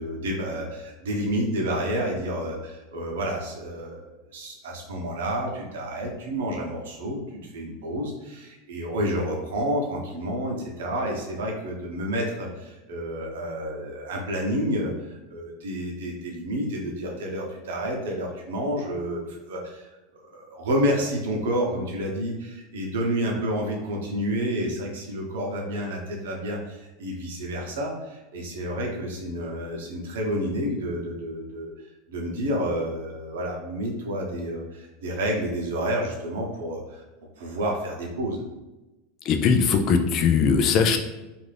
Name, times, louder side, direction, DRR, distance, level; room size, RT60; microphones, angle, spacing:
voice 1, 0.0-19.9 20.1-31.7 32.1-37.0 37.4-38.4, equal, 80° right, 0 dB, 0.7 m, -29 dB
voice 2, 39.3-41.0, left 6 dB, 45° left, 6 dB, 0.4 m, -20 dB
2.5 x 2.5 x 3.3 m, 1.1 s
hypercardioid pair, 110°, 0 cm